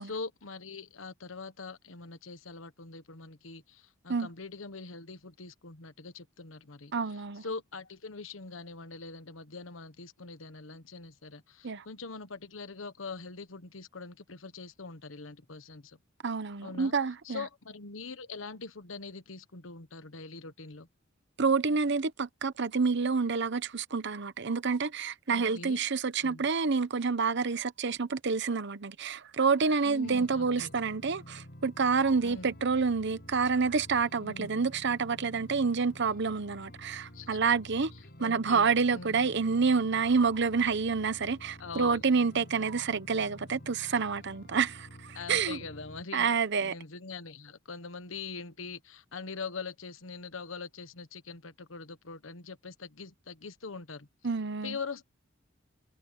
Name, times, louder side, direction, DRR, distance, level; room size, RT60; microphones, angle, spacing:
voice 1, 0.0-16.0 16.6-16.9 17.2-20.9 25.3-25.8 26.2-26.4 29.8-30.7 32.2-32.5 34.2-34.5 37.1-37.5 38.2-39.2 41.6-42.0 45.1-54.1 54.6-55.0, left 4 dB, 80° left, 1.3 m, -43 dB
voice 2, 6.9-7.4 11.6-11.8 16.2-17.4 21.4-37.9 38.2-45.6 46.1-46.7 54.2-54.8, right 5 dB, 60° right, 0.9 m, -28 dB
sound 1, 30.0-46.0, equal, 50° left, 6.3 m, -50 dB
head